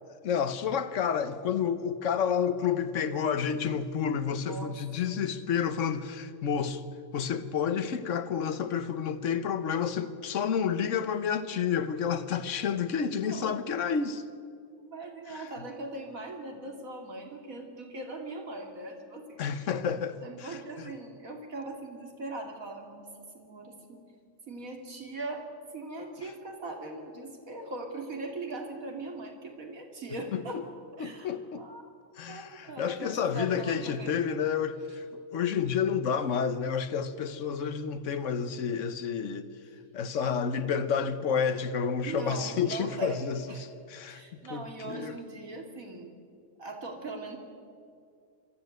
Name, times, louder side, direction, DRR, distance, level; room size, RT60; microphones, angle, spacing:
voice 1, 0.1-6.8 7.1-14.2 15.3-15.5 19.4-20.9 30.3-30.6 31.0-31.7 32.2-39.5 39.9-45.2, left 7 dB, 65° left, 1.4 m, -30 dB
voice 2, 4.4-4.7 8.4-8.5 13.2-13.6 14.8-19.4 19.8-19.9 20.2-23.1 23.3-24.0 24.5-30.6 31.0-31.8 32.3-34.4 42.1-43.6 44.0-46.1 46.6-47.4, right 2 dB, 85° right, 3.1 m, -40 dB
23.0 x 14.0 x 9.3 m
omnidirectional pair, 1.4 m